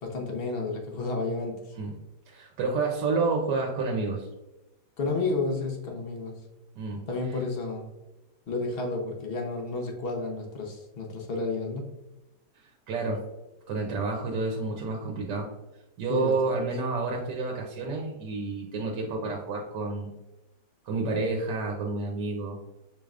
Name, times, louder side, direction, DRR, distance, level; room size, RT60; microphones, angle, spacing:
voice 1, 0.0-1.8 5.0-6.4 7.1-7.9 8.5-12.0 16.1-16.4, left 3 dB, 50° left, 1 dB, 0.7 m, -31 dB
voice 2, 2.3-4.3 6.8-7.0 12.9-13.2 13.7-15.5 16.0-20.1 20.8-22.6, right 3 dB, 80° right, 0 dB, 1.3 m, -29 dB
6.6 x 3.3 x 2.4 m, 1.0 s
omnidirectional pair, 1.9 m